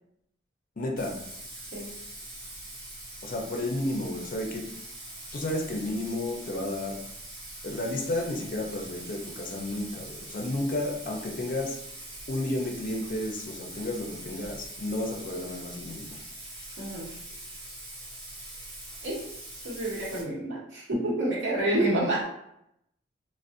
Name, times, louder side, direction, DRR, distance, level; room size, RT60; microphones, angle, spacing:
voice 1, 0.8-1.2 3.2-4.7 5.3-7.0 7.6-11.8 12.3-16.2, left 1 dB, 45° left, 1 dB, 0.5 m, -32 dB
Bathtub (filling or washing), 1.0-20.2, right 1 dB, 45° right, 0.9 m, -43 dB
voice 2, 16.8-17.1 19.0-19.2 19.6-22.2, right 1 dB, 85° right, -5 dB, 0.9 m, -28 dB
2.5 x 2.0 x 2.5 m, 0.77 s
head